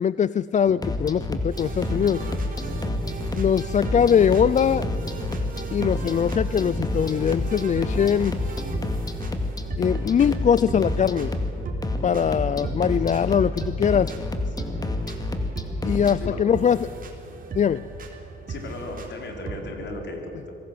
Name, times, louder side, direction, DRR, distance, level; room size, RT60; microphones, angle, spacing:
voice 1, 0.0-2.2 3.4-4.8 5.7-8.4 9.8-11.4 12.0-14.1 15.8-16.9 17.5-17.8, left 8 dB, 40° left, 17 dB, 0.4 m, -22 dB
sound 1, 0.7-16.2, left 1 dB, 20° left, 2.2 m, -29 dB
sound 2, 1.5-19.8, right 3 dB, 45° right, 3.8 m, -37 dB
voice 2, 18.5-20.6, left 2 dB, 65° left, 3 dB, 4.3 m, -37 dB
25.5 x 18.0 x 7.8 m, 2.9 s
cardioid pair, 90°, 20 cm